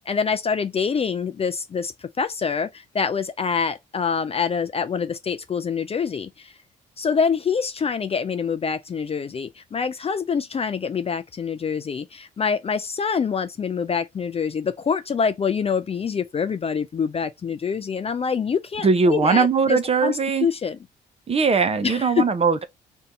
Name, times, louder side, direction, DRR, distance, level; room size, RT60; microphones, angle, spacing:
voice 1, 0.1-6.5 7.0-20.8 21.8-22.3, left 6 dB, 30° left, 0.4 m, -25 dB
voice 2, 18.8-20.5 21.3-22.6, right 5 dB, 30° right, 0.6 m, -20 dB
2.6 x 2.3 x 3.8 m
hypercardioid pair, 40°, 20 cm